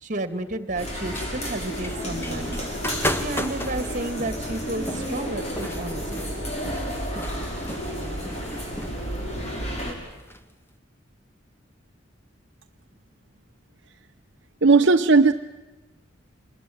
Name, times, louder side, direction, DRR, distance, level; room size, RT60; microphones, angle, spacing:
voice 1, 0.0-2.6 3.1-6.0, right 2 dB, 40° right, 11 dB, 2.3 m, -31 dB
sound 1, 0.7-9.9, equal, 35° left, 6.4 m, -31 dB
sound 2, 1.1-10.4, equal, 10° left, 1.7 m, -35 dB
voice 2, 14.6-15.3, right 4 dB, 65° right, 4 dB, 0.9 m, -15 dB
27.0 x 21.5 x 9.4 m, 1.2 s
head